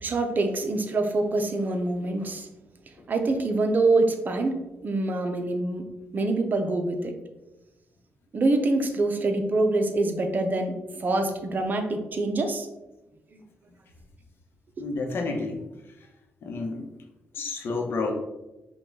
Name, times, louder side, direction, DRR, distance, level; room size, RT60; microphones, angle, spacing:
voice 1, 0.0-2.5 3.1-7.1 8.3-12.7 13.3-13.4 14.8-14.9, right 2 dB, 45° right, 6 dB, 0.7 m, -25 dB
voice 2, 14.8-15.6 16.4-16.9 17.3-18.1, left 3 dB, 65° left, 3 dB, 0.9 m, -30 dB
5.2 x 2.4 x 3.8 m, 1.0 s
cardioid pair, 75°, 4 cm